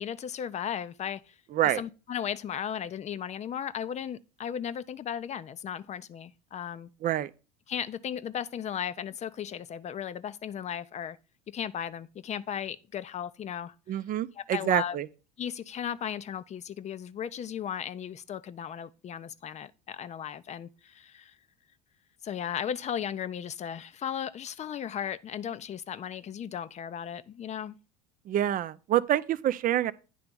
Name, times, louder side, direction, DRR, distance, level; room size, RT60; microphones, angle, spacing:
voice 1, 0.0-1.4 1.6-6.9 7.7-11.2 11.5-14.0 14.3-15.0 15.4-21.4 22.2-27.8, left 9 dB, 35° left, 0.6 m, -36 dB
voice 2, 13.9-15.1 28.3-29.9, right 12 dB, 45° right, 0.6 m, -27 dB
10.0 x 3.4 x 6.8 m
hypercardioid pair, 75°, 20 cm